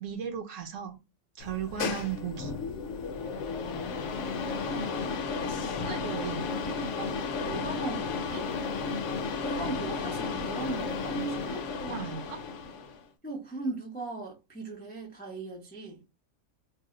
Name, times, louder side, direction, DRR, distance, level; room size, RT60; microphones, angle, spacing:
voice 1, 0.0-1.0 1.4-2.5 5.8-6.5 11.8-12.4, right 8 dB, 70° right, 1.0 m, -36 dB
sound 1, 1.4-13.0, left 4 dB, 65° left, 0.8 m, -33 dB
voice 2, 4.5-5.3 6.4-8.5 9.4-11.7 13.2-16.0, right 3 dB, 15° left, 0.3 m, -38 dB
2.7 x 2.0 x 3.6 m
omnidirectional pair, 1.5 m